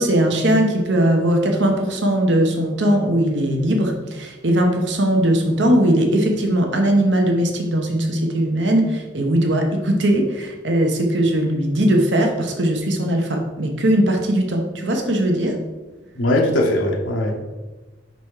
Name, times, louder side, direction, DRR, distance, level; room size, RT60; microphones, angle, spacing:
voice 1, 0.0-15.5, right 1 dB, 70° right, 2 dB, 1.0 m, -19 dB
voice 2, 16.2-17.4, left 1 dB, 85° left, 0 dB, 1.0 m, -19 dB
5.7 x 4.0 x 4.8 m, 1.2 s
head